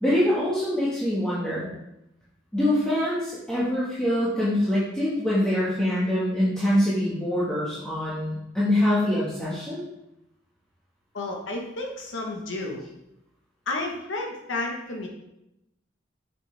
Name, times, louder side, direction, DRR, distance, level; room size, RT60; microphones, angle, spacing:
voice 1, 0.0-1.7 2.5-9.8, left 1 dB, 5° left, -9 dB, 1.4 m, -24 dB
voice 2, 11.1-12.8 13.7-15.1, left 2 dB, 85° left, 0 dB, 1.1 m, -31 dB
7.2 x 5.8 x 3.3 m, 0.88 s
head